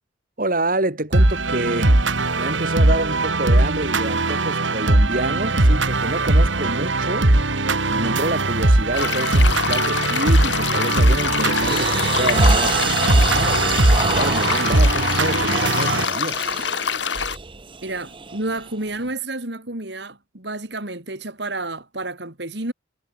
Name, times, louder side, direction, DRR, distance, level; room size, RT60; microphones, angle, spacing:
voice 1, 0.4-2.0 2.3-7.3 7.9-16.4, right 1 dB, 50° right, 4.2 m, -27 dB
sound 1, 1.1-16.1, right 2 dB, 90° right, 2.5 m, -19 dB
sound 2, 8.9-17.4, left 6 dB, 70° left, 1.6 m, -25 dB
sound 3, 9.5-9.7 10.2-10.5 11.0-19.1, right 5 dB, 25° right, 0.9 m, -28 dB
voice 2, 17.8-22.7, right 2 dB, 65° right, 3.9 m, -30 dB
head